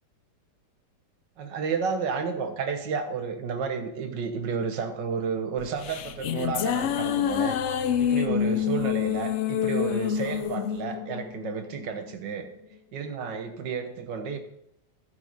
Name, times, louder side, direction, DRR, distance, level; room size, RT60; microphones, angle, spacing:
voice 1, 1.4-7.6 8.0-12.5 12.9-14.4, right 5 dB, 85° right, 7 dB, 1.8 m, -31 dB
sound 1, 5.6-12.1, left 9 dB, 90° left, 0.6 m, -27 dB
12.0 x 9.2 x 4.0 m, 0.78 s
omnidirectional pair, 1.9 m